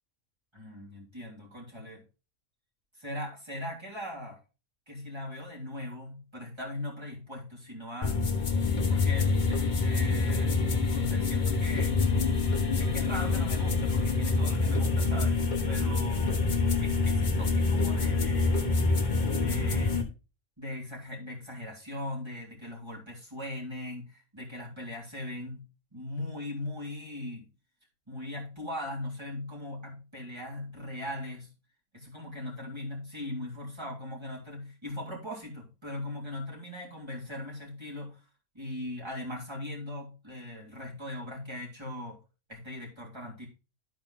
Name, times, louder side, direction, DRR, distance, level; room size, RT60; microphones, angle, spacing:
voice 1, 0.5-2.0 3.0-4.4 4.9-8.2 8.9-10.5 10.9-11.9 12.8-15.4 15.6-16.4 16.8-18.5 19.3-19.9 20.6-25.6 25.9-27.5 28.1-31.5 31.9-38.2 38.5-42.2 42.5-43.5, left 1 dB, 20° right, -2 dB, 3.1 m, -39 dB
sound 1, 8.0-20.0, left 3 dB, 40° left, 1.3 m, -26 dB
12.5 x 4.4 x 3.7 m, 0.31 s
omnidirectional pair, 1.4 m